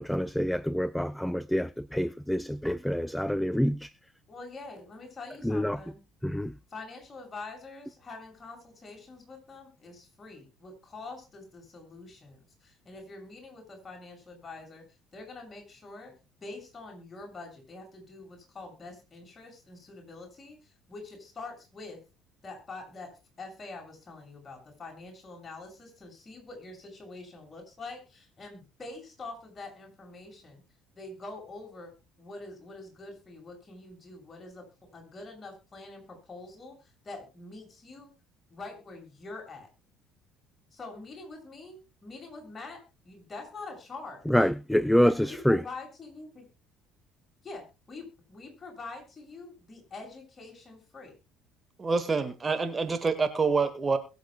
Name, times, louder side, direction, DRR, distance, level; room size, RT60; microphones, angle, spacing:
voice 1, 0.0-3.9 5.4-5.8 6.2-6.5 44.3-45.6, equal, 5° left, 0.5 m, -26 dB
voice 2, 4.3-6.0 6.7-14.8 15.1-16.1 16.4-22.0 22.4-23.1 23.4-30.6 31.0-31.9 32.2-34.6 34.9-38.1 38.5-39.7 40.7-44.5 45.0-46.5 47.4-51.1, left 3 dB, 30° left, 6.6 m, -45 dB
voice 3, 51.8-54.0, right 4 dB, 25° right, 1.8 m, -27 dB
22.0 x 8.1 x 2.3 m
figure-of-eight pair, 55°, 0 cm